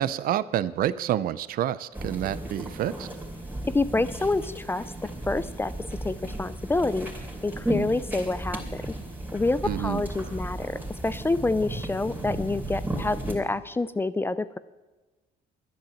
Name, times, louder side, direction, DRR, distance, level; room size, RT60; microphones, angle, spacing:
voice 1, 0.0-3.1 9.6-10.0, right 11 dB, 60° right, 17 dB, 0.5 m, -28 dB
sound 1, 1.9-13.4, right 1 dB, 10° right, 2.8 m, -35 dB
voice 2, 3.7-4.9 5.3-5.7 6.0-9.0 9.3-14.6, left 2 dB, 15° left, 16 dB, 0.4 m, -27 dB
10.5 x 10.5 x 7.1 m, 1.2 s
cardioid pair, 110°, 17 cm